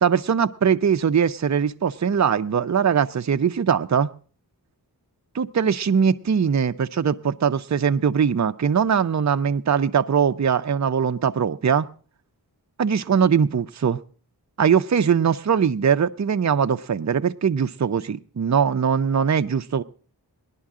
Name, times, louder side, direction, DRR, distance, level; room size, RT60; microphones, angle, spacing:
voice 1, 0.0-4.1 5.3-11.9 12.8-14.0 14.6-19.8, right 7 dB, 45° right, 9 dB, 0.6 m, -21 dB
18.0 x 11.5 x 3.6 m, 0.39 s
wide cardioid pair, 55°, 39 cm